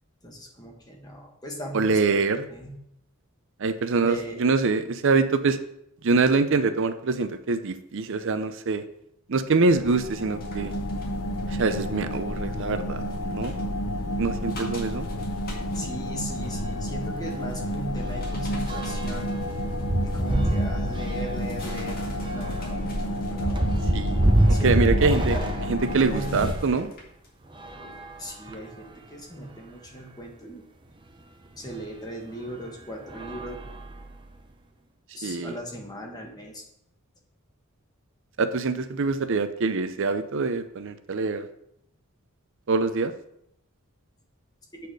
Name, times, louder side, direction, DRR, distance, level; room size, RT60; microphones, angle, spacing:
voice 1, 0.2-2.2 2.5-2.8 4.0-4.4 15.7-19.3 20.0-22.0 22.3-23.7 24.5-25.0 25.3-25.6 26.0-26.5 27.8-30.6 31.6-33.6 35.1-36.6, equal, 20° left, 0 dB, 1.4 m, -38 dB
voice 2, 1.7-2.4 3.6-5.6 6.0-8.8 9.3-10.7 11.5-13.5 14.2-15.1 23.9-24.2 24.6-25.4 25.7-26.9 35.2-35.6 38.4-41.5 42.7-43.1, right 4 dB, 60° right, 11 dB, 0.6 m, -24 dB
sound 1, 9.6-26.5, equal, 85° left, 0.8 m, -31 dB
sound 2, 10.4-27.3 27.7-27.9, left 1 dB, 45° left, 1.8 m, -46 dB
sound 3, 16.3-16.5 16.8-16.9 17.3-26.8 27.5-28.8 29.5-29.6 29.9-30.0 31.7-31.8 32.4-32.6 33.1-34.3, right 1 dB, 20° right, 0.7 m, -27 dB
8.3 x 4.2 x 4.8 m, 0.76 s
head